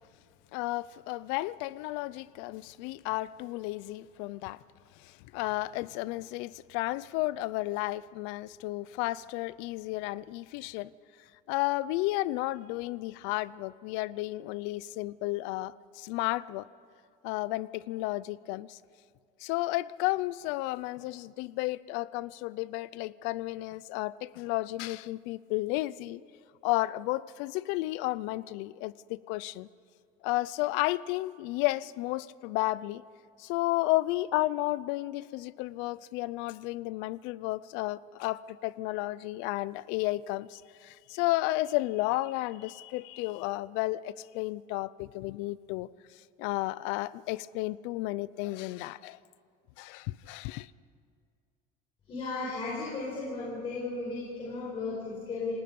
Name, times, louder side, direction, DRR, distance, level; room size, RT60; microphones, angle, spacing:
voice 1, 0.5-4.6 5.3-10.9 11.5-16.6 17.2-18.8 19.4-26.2 26.6-29.7 30.2-33.0 33.4-45.9 46.4-49.2 49.8-50.7, left 18 dB, 85° left, 19 dB, 0.6 m, -32 dB
voice 2, 52.1-55.5, left 3 dB, 30° left, -6 dB, 5.2 m, -35 dB
28.0 x 18.5 x 5.4 m, 2.3 s
cardioid pair, 175°, 19 cm